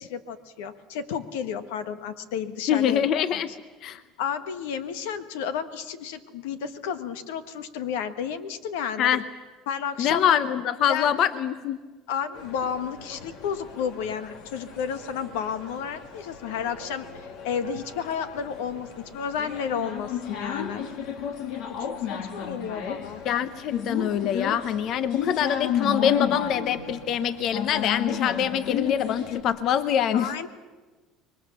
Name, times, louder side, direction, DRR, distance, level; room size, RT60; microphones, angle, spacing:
voice 1, 0.0-3.4 4.2-9.1 9.7-10.3 10.9-11.1 12.1-20.8 21.9-23.2 30.1-30.5, left 7 dB, 90° left, 11 dB, 1.4 m, -32 dB
voice 2, 2.7-3.5 3.8-4.0 9.0-9.2 10.0-11.8 23.2-30.5, left 9 dB, 55° left, 13 dB, 1.0 m, -24 dB
sound 1, 12.3-29.4, left 8 dB, 70° left, 2.7 m, -33 dB
26.0 x 22.5 x 7.2 m, 1.3 s
supercardioid pair, 100°, 0 cm